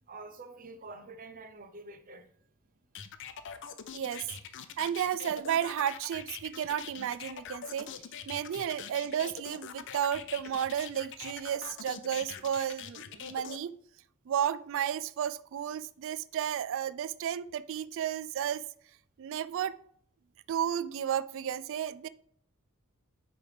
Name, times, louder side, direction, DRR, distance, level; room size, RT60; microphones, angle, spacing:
voice 1, 0.1-2.3, right 3 dB, 40° right, 0.7 m, -47 dB
sound 1, 2.9-13.6, left 7 dB, 55° left, 0.6 m, -43 dB
voice 2, 3.9-4.3 4.8-7.9 8.3-13.7 14.3-18.6 19.2-19.8 20.5-22.1, right 9 dB, 60° right, 0.3 m, -33 dB
8.9 x 3.3 x 5.0 m
head